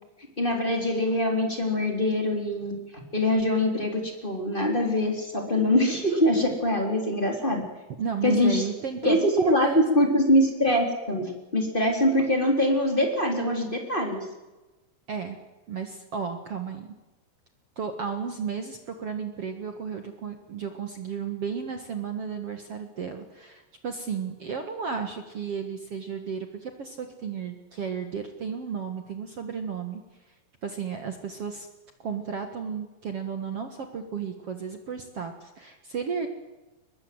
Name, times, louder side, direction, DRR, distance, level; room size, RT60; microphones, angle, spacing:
voice 1, 0.4-7.6 8.2-8.6 9.0-14.2, left 1 dB, 10° left, 3 dB, 3.3 m, -24 dB
voice 2, 8.0-9.8 15.1-15.4 15.7-16.9 17.7-30.0 30.6-31.7 32.0-36.3, right 6 dB, 55° right, 6 dB, 1.7 m, -33 dB
23.0 x 21.0 x 7.9 m, 1.1 s
omnidirectional pair, 5.1 m